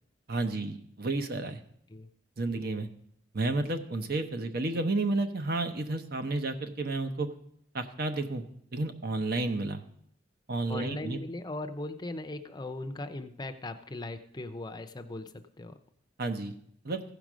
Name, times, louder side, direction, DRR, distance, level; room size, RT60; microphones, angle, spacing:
voice 1, 0.3-1.6 2.4-2.9 3.3-7.3 7.7-8.4 8.7-9.8 10.5-11.2 16.2-16.5 16.8-17.0, right 2 dB, 55° right, 7 dB, 0.9 m, -31 dB
voice 2, 10.7-15.8, left 2 dB, 20° left, 8 dB, 0.6 m, -39 dB
15.5 x 5.1 x 6.2 m, 0.70 s
head